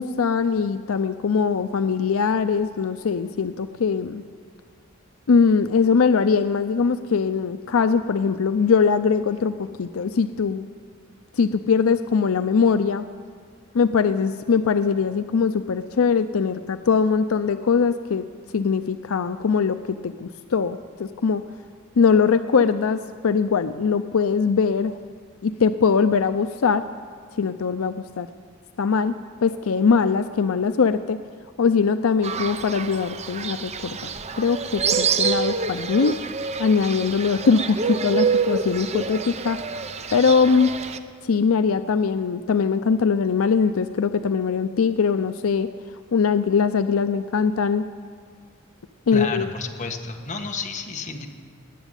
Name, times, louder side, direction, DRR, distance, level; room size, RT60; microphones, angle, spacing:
voice 1, 0.0-4.2 5.3-10.7 11.4-13.0 13.7-18.2 18.5-21.4 22.0-24.9 25.4-26.8 27.4-28.3 28.8-29.1 29.4-31.2 31.6-34.1 34.4-36.2 36.6-39.6 40.1-40.7 41.2-45.7 46.1-47.8 49.1-49.5, left 5 dB, 85° left, 11 dB, 0.5 m, -21 dB
Fowl, 32.2-41.0, right 5 dB, 30° right, 0.7 m, -27 dB
voice 2, 49.1-51.3, left 4 dB, 35° left, 3 dB, 1.5 m, -31 dB
19.5 x 8.1 x 9.0 m, 2.1 s
head